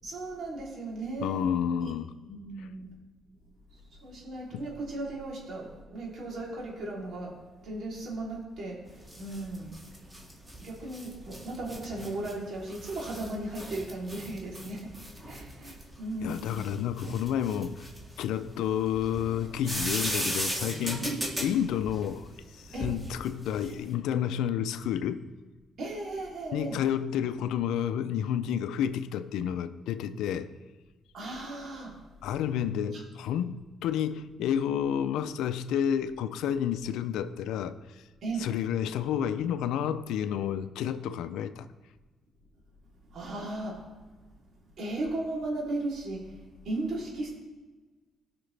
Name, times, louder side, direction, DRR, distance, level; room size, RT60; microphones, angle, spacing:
voice 1, 0.0-1.4 2.3-2.9 4.0-7.3 7.6-9.7 10.6-14.9 15.2-16.7 21.0-21.2 22.7-22.9 25.8-26.8 31.1-31.9 32.9-33.0 38.2-38.5 43.1-43.8 44.8-46.4 46.6-47.3, right 2 dB, 60° right, 3.2 m, -36 dB
voice 2, 1.2-2.1 4.5-4.7 16.2-17.9 18.2-21.1 21.4-25.2 26.5-30.5 32.2-38.0 38.4-41.7, left 9 dB, 90° left, 0.4 m, -30 dB
sound 1, 8.9-23.9, equal, 15° right, 2.0 m, -38 dB
17.5 x 5.8 x 3.4 m
cardioid pair, 90°, 0 cm